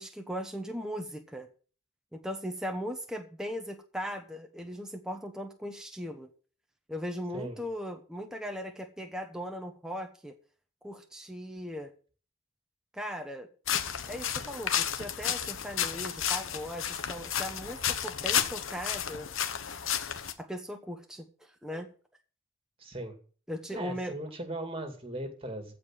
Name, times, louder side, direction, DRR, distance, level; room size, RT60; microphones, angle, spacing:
voice 1, 0.0-1.5 2.1-6.3 6.9-10.4 10.8-11.9 12.9-13.5 14.1-19.3 20.4-21.9 23.5-24.1, equal, 5° right, 4 dB, 1.1 m, -38 dB
sound 1, 13.7-20.3, left 9 dB, 65° left, 1.1 m, -32 dB
voice 2, 22.8-23.2 23.7-25.7, right 1 dB, 25° right, 5 dB, 2.3 m, -38 dB
15.0 x 5.0 x 7.5 m, 0.40 s
head